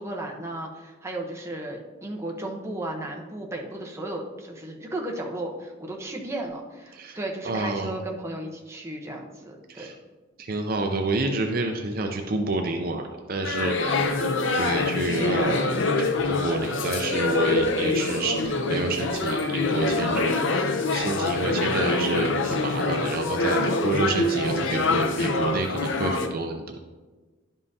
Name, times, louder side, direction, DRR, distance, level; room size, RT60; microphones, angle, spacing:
voice 1, 0.0-9.9 18.0-18.3 21.2-21.7, right 1 dB, 15° right, 0 dB, 0.9 m, -35 dB
voice 2, 7.4-7.9 9.7-9.9 10.4-14.2 14.5-26.8, right 3 dB, 45° right, 4 dB, 0.5 m, -29 dB
sound 1, 13.4-26.3, left 3 dB, 65° left, 0.6 m, -25 dB
11.0 x 5.5 x 2.7 m, 1.2 s
head